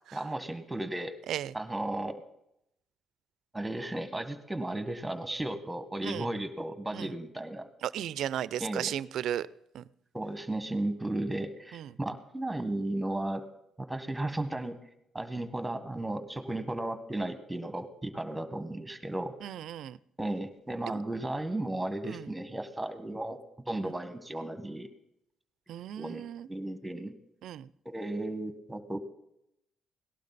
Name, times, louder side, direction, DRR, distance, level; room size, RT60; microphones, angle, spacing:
voice 1, 0.1-1.1 1.5-2.2 3.5-7.7 8.6-8.9 10.1-13.4 13.8-14.7 15.1-19.3 20.2-23.4 23.6-24.9 26.0-27.1 27.8-29.0, right 1 dB, 10° right, 10 dB, 1.6 m, -35 dB
voice 2, 7.8-9.5 9.7-9.9 11.7-11.9 19.4-20.0 20.8-21.0 22.1-22.3 23.8-23.9 25.7-26.5 27.4-27.7, right 11 dB, 80° right, 19 dB, 0.5 m, -35 dB
18.5 x 12.0 x 4.1 m, 0.80 s
cardioid pair, 90°, 0 cm